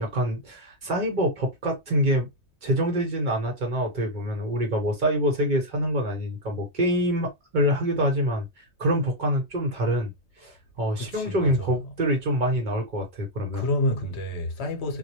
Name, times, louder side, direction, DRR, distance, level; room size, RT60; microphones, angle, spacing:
voice 1, 0.0-2.3 2.6-8.5 8.8-10.1 10.4-13.7, equal, 50° right, 0.9 m, -25 dB
voice 2, 11.0-11.7 13.5-15.0, left 1 dB, 75° left, 1.0 m, -28 dB
2.3 x 2.0 x 2.8 m
omnidirectional pair, 1.1 m